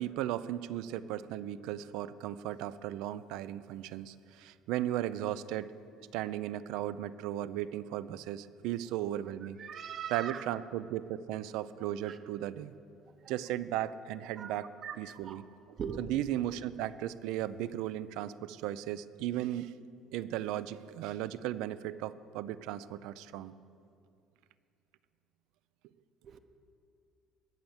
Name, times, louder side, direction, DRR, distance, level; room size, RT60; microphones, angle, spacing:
voice 1, 0.0-5.7 6.1-9.6 10.1-12.7 13.3-14.7 15.0-19.7 20.1-23.5, right 12 dB, 70° right, 15 dB, 0.5 m, -36 dB
voice 2, 9.6-10.4 14.4-14.5 14.8-15.0 15.2-15.4 15.8-16.0 26.2-26.4, right 8 dB, 35° right, 9 dB, 0.8 m, -39 dB
20.5 x 7.9 x 7.2 m, 2.5 s
cardioid pair, 175°, 0 cm